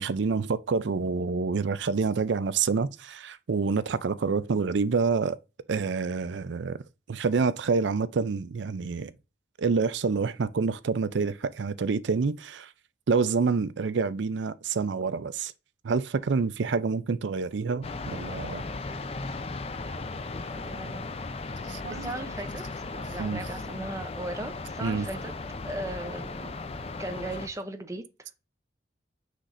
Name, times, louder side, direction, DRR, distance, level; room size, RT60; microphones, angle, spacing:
voice 1, 0.0-5.4 5.7-6.8 7.1-9.1 9.6-12.7 13.1-15.5 15.8-18.6 21.6-22.1 22.9-23.4 24.8-25.1, right 4 dB, 75° right, 0.4 m, -27 dB
sound 1, 17.8-27.5, left 3 dB, 30° left, 0.5 m, -36 dB
voice 2, 20.5-21.1 21.9-22.6 23.1-25.3 25.6-26.6 27.0-28.4, right 2 dB, 15° right, 0.6 m, -37 dB
6.3 x 5.8 x 2.6 m
head